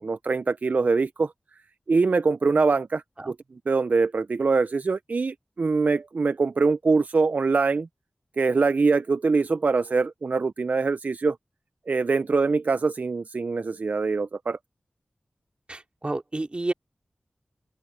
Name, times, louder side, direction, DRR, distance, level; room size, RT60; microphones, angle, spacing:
voice 1, 0.0-1.3 1.9-3.4 3.7-7.9 8.4-11.4 11.9-14.6, right 4 dB, 60° right, 0.4 m, -23 dB
voice 2, 15.7-16.7, right 2 dB, 40° right, 2.6 m, -30 dB
open air
cardioid pair, 50°, 3 cm